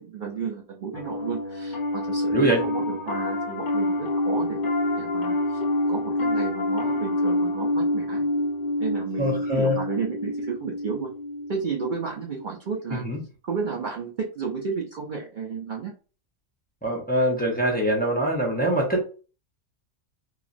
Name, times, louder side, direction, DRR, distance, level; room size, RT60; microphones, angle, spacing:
voice 1, 0.0-4.7 5.0-5.6 5.9-8.3 8.8-11.1 11.5-13.1 13.4-15.9, right 5 dB, 60° right, -1 dB, 0.5 m, -32 dB
Piano, 0.9-12.4, left 1 dB, 55° left, 0.6 m, -27 dB
voice 2, 2.3-2.6 9.2-9.8 12.9-13.2 16.8-19.0, equal, 10° left, -2 dB, 0.4 m, -23 dB
2.9 x 2.4 x 2.5 m, 0.36 s
omnidirectional pair, 1.3 m